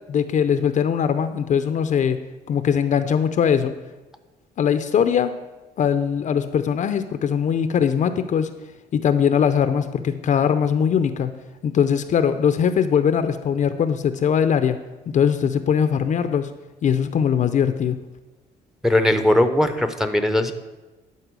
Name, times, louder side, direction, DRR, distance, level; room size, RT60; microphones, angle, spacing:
voice 1, 0.1-2.2 2.5-3.7 4.6-5.3 5.8-8.5 8.9-11.3 11.6-14.8 15.1-16.5 16.8-18.0, left 7 dB, 50° left, 10 dB, 0.6 m, -21 dB
voice 2, 18.8-20.5, left 1 dB, ahead, 8 dB, 0.8 m, -19 dB
11.0 x 4.5 x 6.2 m, 1.1 s
cardioid pair, 105°, 16 cm